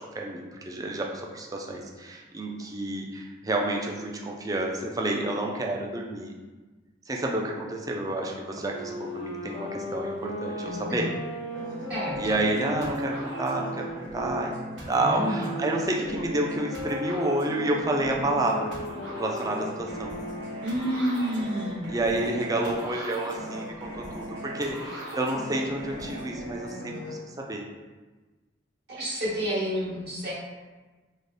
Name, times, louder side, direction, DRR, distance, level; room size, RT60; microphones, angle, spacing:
voice 1, 0.0-6.3 7.1-11.1 12.2-14.5 14.9-18.7 19.2-20.1 21.9-27.2 27.5-27.6, right 1 dB, 20° right, 0 dB, 0.4 m, -29 dB
Wind instrument woodwind instrument, 8.6-14.4 15.2-20.6, equal, 90° left, 0.6 m, -37 dB
voice 2, 10.6-11.1 11.9-12.2 15.0-15.5 20.6-21.9 28.9-30.3, equal, 60° right, -9 dB, 1.5 m, -29 dB
sound 1, 11.5-27.1, right 1 dB, 75° right, 0.9 m, -39 dB
3.2 x 2.1 x 4.0 m, 1.3 s
head